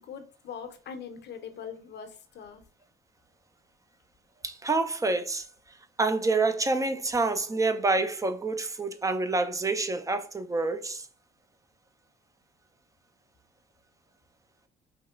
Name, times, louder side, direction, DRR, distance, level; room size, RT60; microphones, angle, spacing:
voice 1, 0.0-2.6, left 7 dB, 60° left, 0.6 m, -42 dB
voice 2, 4.4-5.5 6.0-11.1, right 3 dB, 15° right, 0.3 m, -27 dB
3.0 x 2.9 x 2.3 m
cardioid pair, 90°, 20 cm